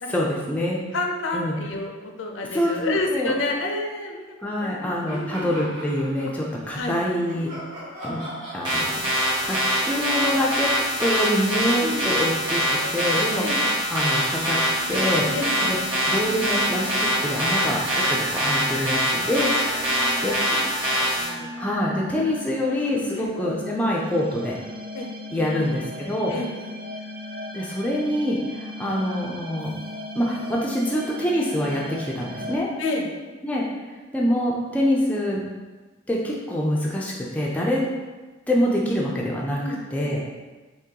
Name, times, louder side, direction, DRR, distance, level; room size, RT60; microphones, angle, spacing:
voice 1, 0.1-0.8 1.3-1.6 2.5-3.3 4.4-7.5 8.0-8.2 8.5-9.6 9.8-10.7 11.0-13.4 13.9-14.6 14.9-15.3 15.6-15.8 16.1-17.8 18.1-19.5 20.2-20.6 21.6-24.6 25.3-26.3 27.5-29.7 30.2-32.7 33.4-33.6 34.1-35.5 36.1-37.9 38.5-39.6 39.9-40.2, left 1 dB, 10° left, -4 dB, 0.4 m, -25 dB
voice 2, 0.9-4.2 4.6-5.5 6.7-7.0 11.8-12.1 13.4-13.8 15.3-15.8 17.6-17.7 19.8-20.0 20.4-21.5 23.2-23.3 24.9-26.8 32.8-33.1 38.9-39.3 39.6-40.3, left 2 dB, 80° left, 2 dB, 0.5 m, -31 dB
sound 1, 5.1-6.7 7.2-15.5, equal, 80° right, 1.4 m, -41 dB
sound 2, 8.6-21.3, equal, 25° right, 1.0 m, -24 dB
sound 3, 14.1-32.6, equal, 55° right, 0.4 m, -37 dB
3.7 x 2.9 x 2.8 m, 1.3 s
head